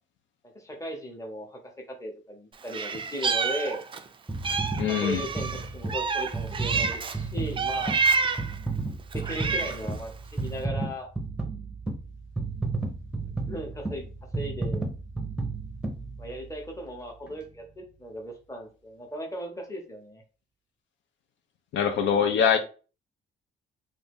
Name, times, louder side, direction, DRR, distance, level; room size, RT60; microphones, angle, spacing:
voice 1, 0.5-1.6 2.0-3.8 4.8-8.0 9.1-11.1 13.5-14.1 14.3-14.9 16.2-20.2, equal, 15° left, 1.1 m, -37 dB
Meow, 2.7-4.1 4.4-7.2 7.6-8.6 9.1-9.9, right 4 dB, 25° right, 0.4 m, -28 dB
sound 1, 4.3-16.7 17.3-17.4, right 3 dB, 5° right, 0.7 m, -33 dB
voice 2, 4.8-5.2 21.7-22.6, left 8 dB, 70° left, 0.5 m, -23 dB
2.6 x 2.5 x 3.6 m
cardioid pair, 90°, 20 cm